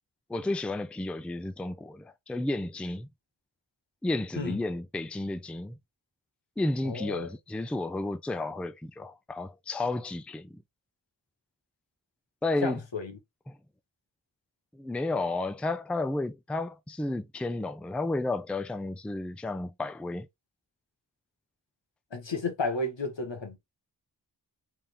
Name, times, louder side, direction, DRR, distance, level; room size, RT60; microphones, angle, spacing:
voice 1, 0.3-3.1 4.0-5.8 6.6-10.6 12.4-12.8 13.5-13.6 14.7-20.3, left 2 dB, 5° left, 0.4 m, -32 dB
voice 2, 6.8-7.3 12.6-13.1 22.1-23.6, left 3 dB, 85° left, 1.2 m, -32 dB
3.6 x 2.8 x 3.3 m
wide cardioid pair, 50°, 44 cm